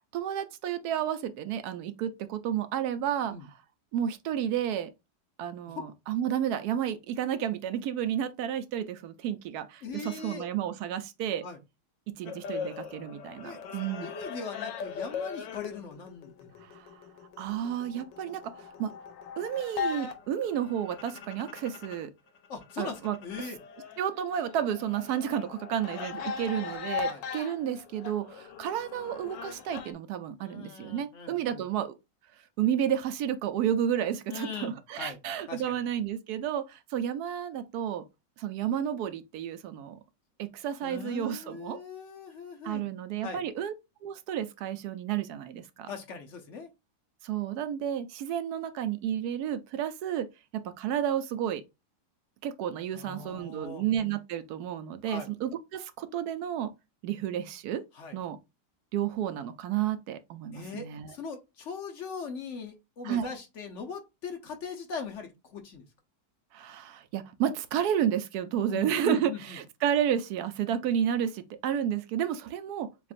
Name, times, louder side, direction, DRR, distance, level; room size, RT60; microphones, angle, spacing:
voice 1, 0.0-3.4 3.9-4.9 5.4-11.4 12.1-14.1 16.6-16.9 17.4-18.9 19.4-22.1 22.8-23.2 24.0-31.9 32.6-38.0 38.4-40.0 40.4-41.8 42.6-43.7 44.0-45.9 47.2-50.3 50.5-51.6 52.4-56.7 57.0-57.8 58.1-58.4 58.9-61.2 63.0-63.3 66.5-72.9, right 10 dB, 70° right, 1.0 m, -31 dB
voice 2, 9.8-10.5 11.4-11.6 13.4-13.6 14.0-16.6 22.5-23.6 27.1-27.2 30.4-31.6 34.3-35.2 35.5-35.8 40.8-42.9 43.2-43.4 45.9-46.7 52.9-53.8 55.0-55.3 57.9-58.2 60.5-65.8 68.7-69.6, left 5 dB, 55° left, 0.9 m, -40 dB
sound 1, 12.3-22.1 22.4-29.9, left 6 dB, 85° left, 1.5 m, -39 dB
7.1 x 2.5 x 2.5 m
omnidirectional pair, 1.9 m